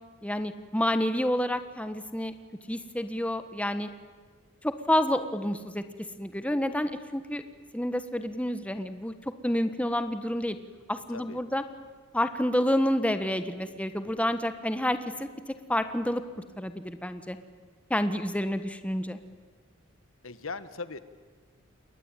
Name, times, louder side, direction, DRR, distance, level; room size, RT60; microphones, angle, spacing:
voice 1, 0.2-2.3 2.7-3.9 4.6-5.8 6.2-7.4 7.7-9.1 9.4-10.6 10.9-11.6 12.1-15.3 15.7-16.2 16.6-17.4 17.9-19.2, left 1 dB, 5° left, 10 dB, 1.3 m, -29 dB
voice 2, 20.2-21.0, left 4 dB, 70° left, 13 dB, 1.4 m, -38 dB
28.5 x 22.0 x 9.1 m, 1.5 s
head